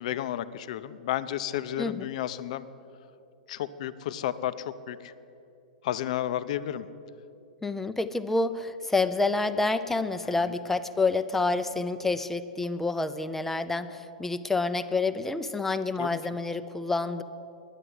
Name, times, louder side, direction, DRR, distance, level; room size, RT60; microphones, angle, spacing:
voice 1, 0.0-2.7 3.5-5.1 5.8-6.9 10.2-10.3 16.0-16.2, left 11 dB, 60° left, 14 dB, 0.5 m, -32 dB
voice 2, 1.8-2.1 7.6-17.2, left 3 dB, 5° left, 11 dB, 0.5 m, -28 dB
9.9 x 9.8 x 9.5 m, 2.7 s
hypercardioid pair, 115°, 4 cm